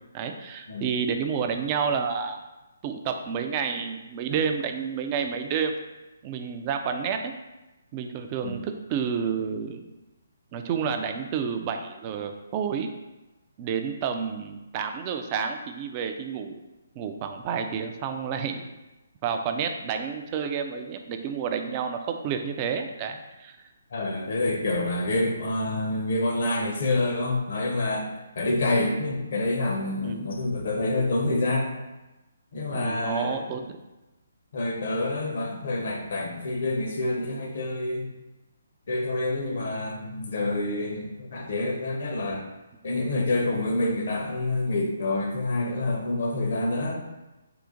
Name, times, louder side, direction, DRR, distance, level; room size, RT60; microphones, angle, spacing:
voice 1, 0.1-2.4 2.8-5.8 6.2-7.3 7.9-9.8 10.5-12.9 13.6-16.6 17.0-18.6 19.2-23.6 30.0-30.2 32.7-33.8, right 6 dB, 25° right, 6 dB, 0.3 m, -30 dB
voice 2, 23.9-28.1 28.4-31.7 32.5-33.4 34.5-38.1 38.9-42.4 42.8-47.0, left 2 dB, 50° left, 1 dB, 0.7 m, -27 dB
3.8 x 2.4 x 3.7 m, 1.0 s
figure-of-eight pair, 135°, 0 cm